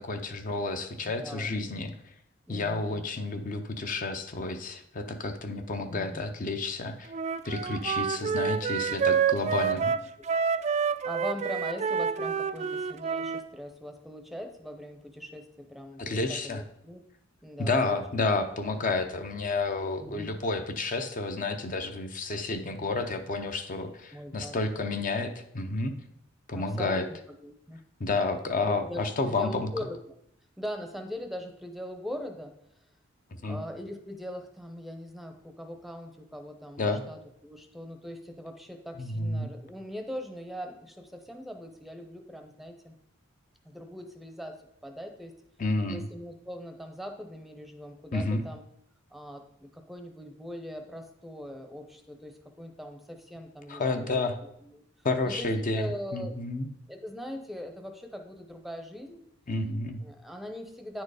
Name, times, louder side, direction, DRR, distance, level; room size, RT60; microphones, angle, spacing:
voice 1, 0.0-1.9 2.5-7.1 7.4-9.9 16.0-16.6 17.6-25.9 26.5-27.0 28.0-29.7 33.4-33.6 36.8-37.0 39.0-39.5 45.6-46.0 48.1-48.4 53.7-54.4 55.0-55.8 56.1-56.7 59.5-60.0, left 3 dB, 40° left, 6 dB, 0.6 m, -30 dB
voice 2, 1.0-1.9 2.5-3.0 5.9-6.4 9.6-10.0 11.0-17.0 17.4-18.0 20.0-20.4 24.1-24.9 26.5-27.2 27.4-27.8 28.6-30.0 30.6-32.5 33.5-42.9 43.6-44.5 44.8-45.3 45.9-48.6 49.1-54.8 55.2-56.4 56.9-59.2 60.0-61.0, equal, ahead, 6 dB, 0.7 m, -41 dB
Wind instrument woodwind instrument, 7.1-13.4, right 6 dB, 35° right, 0.3 m, -28 dB
9.2 x 4.5 x 4.8 m, 0.75 s
head